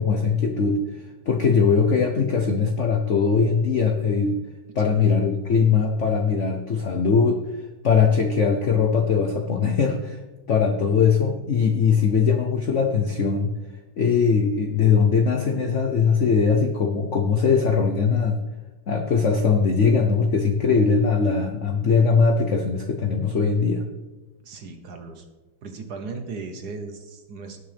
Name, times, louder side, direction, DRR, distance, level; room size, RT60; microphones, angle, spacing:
voice 1, 0.0-4.4 4.8-7.4 7.8-10.2 10.5-13.5 14.0-18.4 18.9-23.8, left 5 dB, 75° left, 4 dB, 0.6 m, -21 dB
voice 2, 24.4-25.2 25.6-27.6, right 4 dB, 55° right, 6 dB, 1.3 m, -37 dB
18.0 x 6.7 x 3.4 m, 1.2 s
omnidirectional pair, 2.4 m